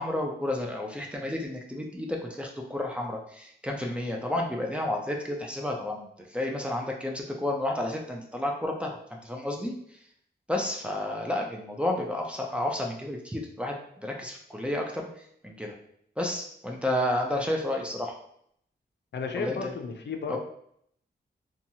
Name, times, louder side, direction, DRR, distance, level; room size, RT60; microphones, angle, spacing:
voice 1, 0.0-10.1 10.5-15.8 16.2-18.2 19.3-19.7 20.3-20.4, left 1 dB, 5° right, 0 dB, 0.4 m, -31 dB
voice 2, 19.1-20.4, left 4 dB, 70° left, 4 dB, 0.4 m, -33 dB
2.8 x 2.3 x 2.7 m, 0.68 s
wide cardioid pair, 135°, 18 cm